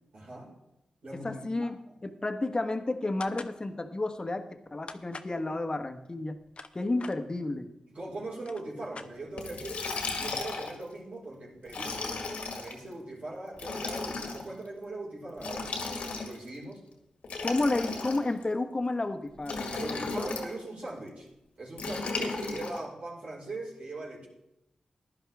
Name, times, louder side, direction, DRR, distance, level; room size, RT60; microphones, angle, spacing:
voice 1, 0.1-0.5 1.0-1.7 7.9-12.0 12.5-16.8 19.7-21.3 21.6-24.3, right 2 dB, 75° right, -5 dB, 5.1 m, -40 dB
voice 2, 1.1-6.4 6.7-7.7 17.4-20.0, left 2 dB, 35° left, 7 dB, 1.3 m, -31 dB
sound 1, 3.2-3.6 4.9-5.4 6.3-7.2 8.0-8.1 8.3-9.5, left 4 dB, 55° left, 0.8 m, -44 dB
Liquid, 9.4-10.8 11.7-12.7 13.5-14.4 15.4-16.5 17.2-18.4 19.4-20.5 21.8-22.8, left 3 dB, 80° left, 1.9 m, -35 dB
15.5 x 11.0 x 3.5 m, 0.89 s
cardioid pair, 45°, 2 cm